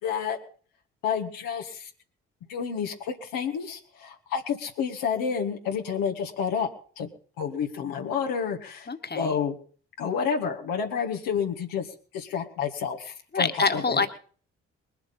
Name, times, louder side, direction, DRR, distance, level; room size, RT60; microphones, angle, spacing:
voice 1, 0.0-0.4 1.0-1.9 2.5-6.7 7.0-7.1 7.4-8.9 9.1-9.6 10.0-11.9 12.1-14.1, left 7 dB, 80° left, 2 dB, 1.8 m, -29 dB
voice 2, 8.9-9.4 13.3-14.1, left 4 dB, 30° left, 7 dB, 1.8 m, -25 dB
21.5 x 7.9 x 5.5 m, 0.43 s
hypercardioid pair, 40°, 34 cm